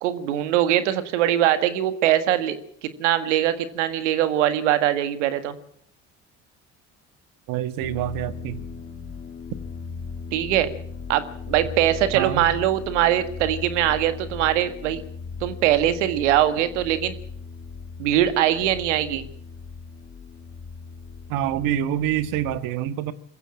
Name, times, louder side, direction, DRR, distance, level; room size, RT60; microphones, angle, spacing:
voice 1, 0.0-5.6 10.3-10.7 11.1-15.0 15.4-17.1 18.0-19.3, right 12 dB, 85° right, 1.8 m, -22 dB
voice 2, 7.5-8.7 12.1-12.5 21.3-23.1, right 11 dB, 70° right, 1.6 m, -26 dB
sound 1, 7.8-22.6, left 5 dB, 35° left, 2.2 m, -38 dB
21.5 x 15.0 x 8.9 m
hypercardioid pair, 65°, 35 cm